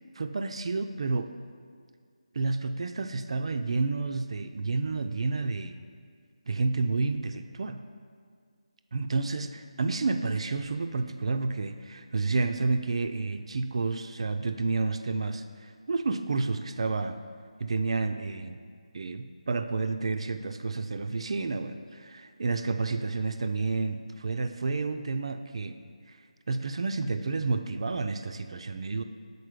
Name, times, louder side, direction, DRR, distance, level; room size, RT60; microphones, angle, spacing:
voice 1, 0.2-1.3 2.3-5.8 6.5-7.8 8.9-17.2 17.6-18.6 18.9-25.8 26.1-26.2 26.5-29.0, right 3 dB, 55° right, 8 dB, 0.3 m, -30 dB
6.6 x 4.0 x 5.0 m, 2.1 s
figure-of-eight pair, 160°, 4 cm